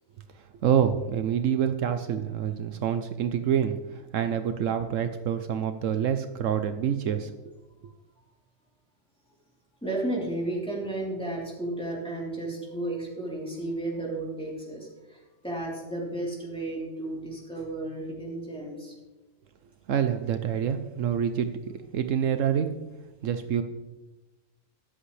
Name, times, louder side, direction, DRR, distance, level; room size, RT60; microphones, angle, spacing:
voice 1, 0.4-7.3 19.9-21.5 21.9-22.7 23.2-23.6, right 8 dB, 75° right, 8 dB, 1.0 m, -27 dB
voice 2, 9.8-19.0, right 2 dB, 5° left, -5 dB, 3.6 m, -33 dB
23.5 x 8.1 x 3.3 m, 1.1 s
omnidirectional pair, 1.4 m